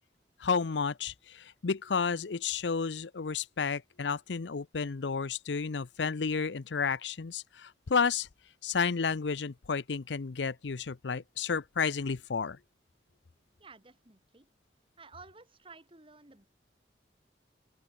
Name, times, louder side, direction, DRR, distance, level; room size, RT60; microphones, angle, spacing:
voice 1, 0.4-8.3 8.6-12.6, left 5 dB, 85° left, 0.6 m, -31 dB
voice 2, 13.6-14.5 15.0-16.5, right 4 dB, 30° right, 2.5 m, -53 dB
open air
head